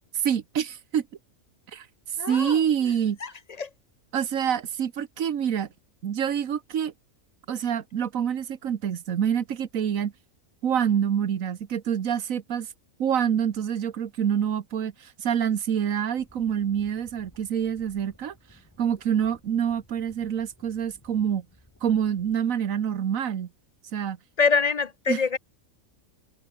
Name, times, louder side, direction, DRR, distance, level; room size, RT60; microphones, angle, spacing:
voice 1, 0.1-1.1 1.7-1.9 2.3-3.2 4.1-5.7 6.0-6.9 7.5-10.1 10.6-12.7 13.0-18.3 18.8-21.4 21.8-23.5 23.9-24.2 25.1-25.2, right 8 dB, 75° right, 1.5 m, -26 dB
voice 2, 2.2-2.6 3.2-3.3 3.6-3.7 24.4-25.4, left 5 dB, 55° left, 0.4 m, -24 dB
sound 1, 16.2-22.4, left 1 dB, 10° left, 3.4 m, -58 dB
omnidirectional pair, 1.4 m